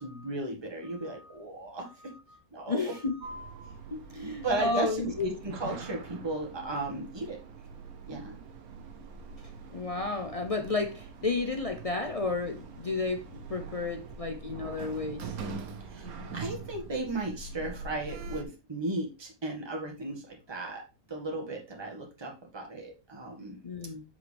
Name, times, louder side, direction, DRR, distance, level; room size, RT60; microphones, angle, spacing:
voice 1, 0.0-2.1 2.5-2.9 4.4-7.4 8.1-8.4 15.9-20.8 21.1-23.6, right 1 dB, 15° right, 1.7 m, -35 dB
voice 2, 0.9-1.4 1.9-2.4 2.7-3.3 3.9-5.1 9.4-15.4 23.6-24.0, left 3 dB, 50° left, 0.4 m, -33 dB
Sliding door, 3.2-18.4, right 4 dB, 75° right, 1.4 m, -43 dB
7.8 x 5.5 x 3.4 m
omnidirectional pair, 1.6 m